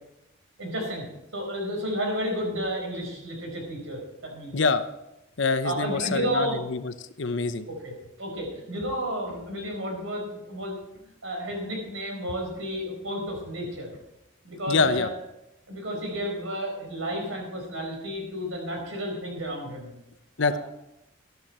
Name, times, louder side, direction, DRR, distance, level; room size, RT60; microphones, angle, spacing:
voice 1, 0.6-1.1 1.3-4.6 5.6-6.6 7.8-10.8 11.0-13.9 14.4-15.1 15.7-19.9 20.5-20.6, equal, 85° right, 1 dB, 4.9 m, -32 dB
voice 2, 4.5-4.9 5.4-7.7 14.7-15.1 20.4-20.6, left 4 dB, 65° left, 11 dB, 0.8 m, -25 dB
13.0 x 12.0 x 4.4 m, 0.89 s
head